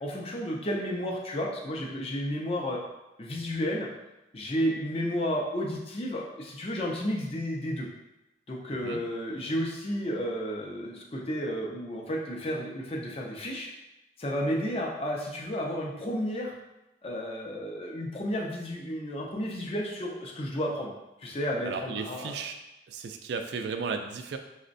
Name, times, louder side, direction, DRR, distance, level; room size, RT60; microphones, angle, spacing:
voice 1, 0.0-2.8 3.2-3.9 4.3-7.9 8.5-13.7 14.2-16.5 17.0-20.9 21.2-22.3, equal, 35° left, -2 dB, 0.5 m, -32 dB
voice 2, 21.6-22.6 22.9-24.4, right 5 dB, 70° right, 5 dB, 0.3 m, -34 dB
5.8 x 2.1 x 2.5 m, 0.96 s
head